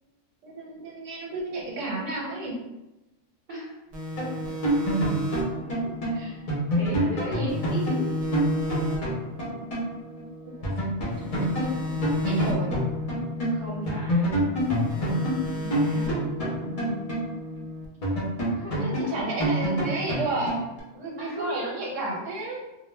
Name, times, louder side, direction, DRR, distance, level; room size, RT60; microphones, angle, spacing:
voice 1, 0.4-2.6 6.1-6.4 7.2-7.5 10.4-12.7 15.5-16.1 19.1-20.6 20.9-22.6, right 2 dB, 80° right, -2 dB, 1.0 m, -32 dB
sound 1, 3.9-7.2 7.5-10.7 11.1-14.3 14.6-17.9, left 1 dB, 65° right, 0.3 m, -34 dB
sound 2, 4.1-9.9 10.2-10.3 10.6-13.6 13.9-17.6 18.0-20.8, right 1 dB, 45° left, 0.5 m, -27 dB
voice 2, 5.6-5.9 6.7-8.1 13.5-14.6 16.6-17.1 18.5-19.2 21.2-21.6, equal, 45° right, -7 dB, 0.7 m, -37 dB
2.1 x 2.1 x 3.2 m, 0.99 s
omnidirectional pair, 1.3 m